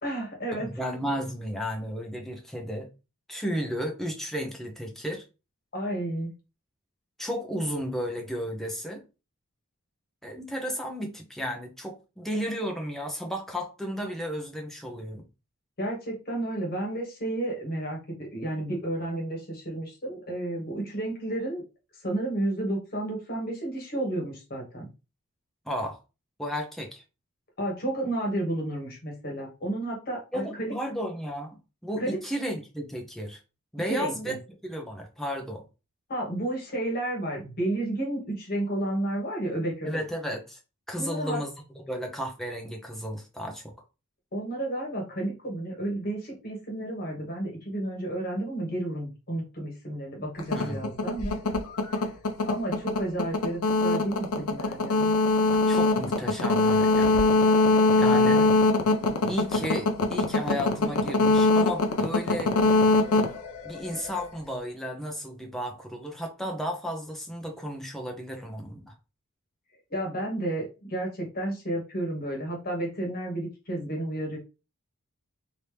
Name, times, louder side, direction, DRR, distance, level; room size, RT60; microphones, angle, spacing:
voice 1, 0.0-0.7 5.7-6.3 15.8-21.6 22.0-24.9 27.6-30.7 32.0-32.2 33.8-34.3 36.1-39.9 41.0-41.4 44.3-51.3 52.5-55.1 58.2-58.5 69.9-74.4, right 1 dB, 45° left, 1.4 m, -31 dB
voice 2, 0.5-2.9 3.3-5.2 7.2-9.0 10.2-15.2 25.7-26.0 26.4-27.0 30.3-33.4 33.7-34.4 34.6-35.6 39.8-40.6 40.9-43.7 50.5-50.9 55.5-57.2 58.0-58.4 59.3-62.6 63.6-68.9, equal, ahead, 0.7 m, -33 dB
sound 1, 50.4-64.2, left 2 dB, 75° left, 0.7 m, -23 dB
3.1 x 2.8 x 3.4 m
head